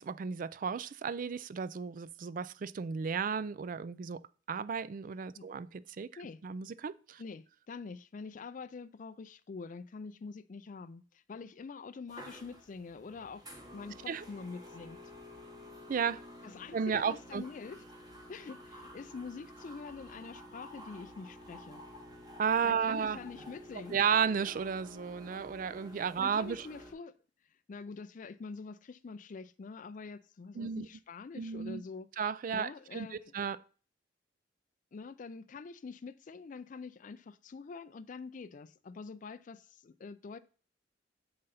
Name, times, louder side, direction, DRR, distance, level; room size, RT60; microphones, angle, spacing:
voice 1, 0.0-4.2 4.5-6.1 6.4-7.2 14.1-14.2 15.9-16.2 16.7-17.4 22.4-23.2 23.9-26.7 30.6-30.9 31.4-31.8 32.2-33.6, right 6 dB, 45° right, 0.4 m, -33 dB
voice 2, 7.2-15.0 16.4-17.8 18.3-21.8 22.6-24.0 26.2-27.1 27.7-32.1 32.5-33.3 34.9-40.4, left 4 dB, 45° left, 0.4 m, -46 dB
sound 1, 12.1-26.9, equal, 20° right, 1.5 m, -51 dB
7.7 x 3.9 x 5.6 m
head